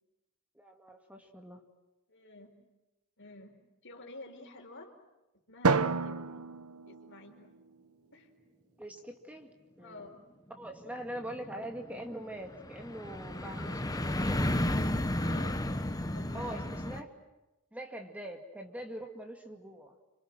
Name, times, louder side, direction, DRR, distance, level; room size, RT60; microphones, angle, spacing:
voice 1, 0.6-1.6 8.8-9.5 9.8-10.1 10.6-14.8 16.3-17.1 17.7-20.0, right 1 dB, 5° right, 3 dB, 2.2 m, -43 dB
voice 2, 2.1-2.5 3.2-3.5 3.8-4.9 5.5-6.5 6.8-7.6 8.1-8.3 9.8-10.2 13.6-13.8 15.2-15.6 16.1-16.7, left 2 dB, 60° left, 4 dB, 4.7 m, -50 dB
Drum, 5.6-7.9, right 4 dB, 80° right, 1.0 m, -31 dB
sound 1, 10.6-17.0, left 1 dB, 15° left, 1.3 m, -33 dB
29.0 x 26.0 x 7.7 m, 0.99 s
head